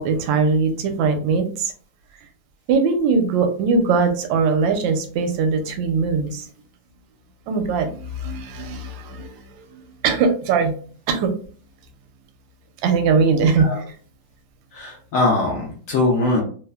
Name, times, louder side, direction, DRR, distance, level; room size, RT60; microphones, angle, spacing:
voice 1, 0.0-1.7 2.7-6.5 7.5-10.7 11.1-11.3 12.8-13.7, right 4 dB, 80° right, 6 dB, 1.3 m, -21 dB
voice 2, 14.7-16.4, left 2 dB, 80° left, -1 dB, 0.7 m, -21 dB
3.1 x 2.0 x 2.2 m, 0.44 s
omnidirectional pair, 2.1 m